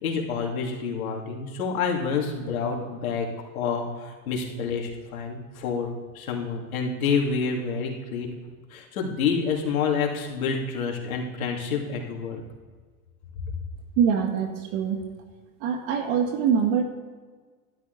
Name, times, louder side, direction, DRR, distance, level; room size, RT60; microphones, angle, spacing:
voice 1, 0.0-3.3 3.5-8.3 8.7-12.4, left 5 dB, 85° left, 0 dB, 2.7 m, -28 dB
voice 2, 14.0-15.0 15.6-16.8, right 7 dB, 60° right, 5 dB, 1.6 m, -23 dB
12.5 x 12.0 x 4.0 m, 1.5 s
supercardioid pair, 120°, 41 cm